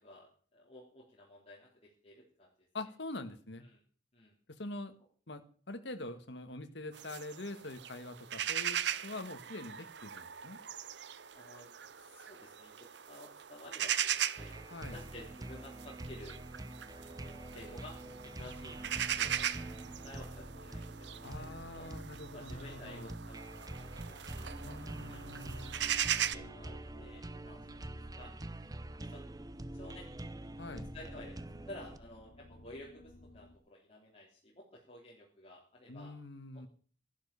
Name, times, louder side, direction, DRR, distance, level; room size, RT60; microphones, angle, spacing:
voice 1, 0.0-2.7 3.6-3.8 4.1-4.3 11.3-14.6 14.9-16.4 17.1-19.7 20.0-21.9 22.3-24.8 25.1-25.7 26.3-27.8 28.2-28.3 29.0-29.2 29.7-30.1 30.9-36.1, left 1 dB, 30° left, -4 dB, 3.5 m, -53 dB
voice 2, 2.7-3.7 4.5-4.9 5.3-10.6 14.7-15.0 21.2-23.1 24.6-25.8 30.6-30.9 35.9-36.7, left 2 dB, 70° left, 8 dB, 1.6 m, -44 dB
sound 1, 6.9-26.4, right 10 dB, 70° right, 0.7 m, -39 dB
sound 2, 14.4-32.0, right 1 dB, 20° right, 0.7 m, -46 dB
sound 3, 16.9-33.6, left 1 dB, 50° left, 2.3 m, -57 dB
13.0 x 11.5 x 6.9 m, 0.43 s
head